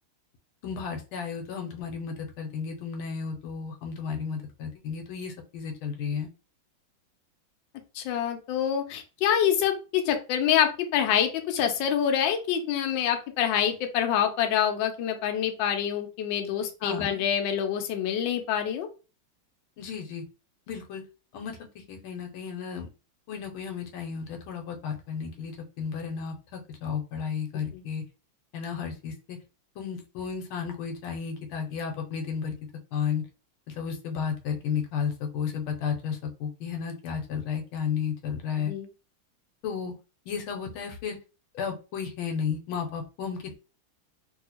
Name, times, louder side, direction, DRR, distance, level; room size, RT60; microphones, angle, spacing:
voice 1, 0.6-6.3 16.8-17.2 19.8-20.2 20.7-21.0 21.3-21.6 21.9-22.9 23.3-28.0 28.5-29.4 29.8-32.5 32.9-33.2 33.7-38.7 39.6-39.9 40.3-41.2 41.5-43.6, left 6 dB, 90° left, 4 dB, 1.5 m, -33 dB
voice 2, 7.9-18.9 38.6-38.9, left 9 dB, 70° left, 5 dB, 1.3 m, -26 dB
3.2 x 2.7 x 2.8 m, 0.32 s
omnidirectional pair, 2.3 m